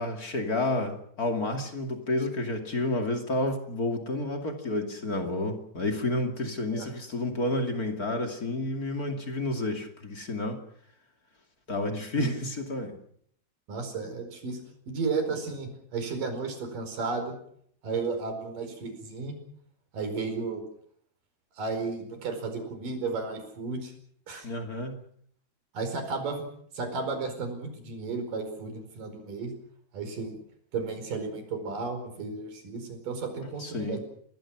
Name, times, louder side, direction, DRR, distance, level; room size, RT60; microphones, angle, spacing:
voice 1, 0.0-10.6 11.7-13.0 24.4-25.0 33.6-34.0, left 2 dB, 25° left, 5 dB, 2.4 m, -30 dB
voice 2, 13.7-14.6 14.9-17.3 17.8-19.4 19.9-20.6 21.6-23.9 24.3-24.5 25.7-26.4 26.7-29.5 29.9-30.4 30.7-34.0, right 4 dB, 55° right, 6 dB, 6.2 m, -33 dB
28.0 x 20.0 x 6.1 m, 0.64 s
omnidirectional pair, 4.7 m